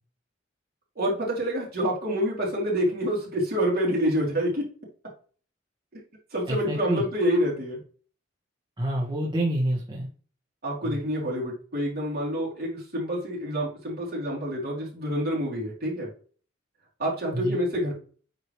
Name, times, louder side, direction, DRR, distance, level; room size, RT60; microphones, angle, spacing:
voice 1, 1.0-4.6 5.9-6.0 6.3-7.8 10.6-16.1 17.0-17.9, equal, 50° right, -4 dB, 3.4 m, -27 dB
voice 2, 6.5-7.0 8.8-10.1 10.8-11.0 17.3-17.6, right 1 dB, 25° right, -4 dB, 1.5 m, -28 dB
8.6 x 4.9 x 3.2 m, 0.40 s
head